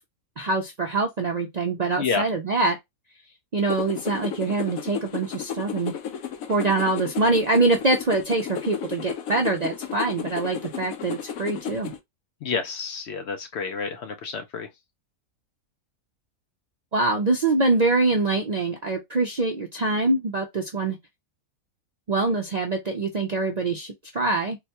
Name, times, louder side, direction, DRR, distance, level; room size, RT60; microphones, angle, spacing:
voice 1, 0.4-2.8 3.5-5.9 6.5-11.9 16.9-21.0 22.1-24.6, right 3 dB, 55° right, 0.4 m, -24 dB
sound 1, 3.7-12.0, left 8 dB, 80° left, 1.1 m, -34 dB
voice 2, 12.4-14.7, left 5 dB, 65° left, 0.7 m, -29 dB
3.9 x 2.3 x 2.8 m
omnidirectional pair, 1.4 m